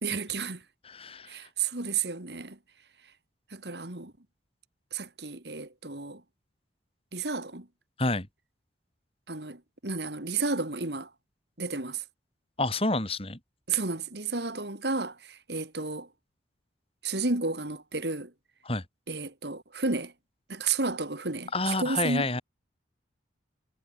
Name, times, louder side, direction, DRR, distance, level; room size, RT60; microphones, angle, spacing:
voice 1, 0.0-0.6 1.3-2.6 3.5-4.1 4.9-6.2 7.1-7.7 9.3-11.1 11.6-12.0 13.7-16.1 17.0-18.3 19.1-20.1 20.5-22.3, right 4 dB, 60° right, 2.7 m, -32 dB
voice 2, 0.8-1.4 8.0-8.3 12.6-13.4 18.6-18.8 21.5-22.4, left 2 dB, 30° left, 4.5 m, -28 dB
head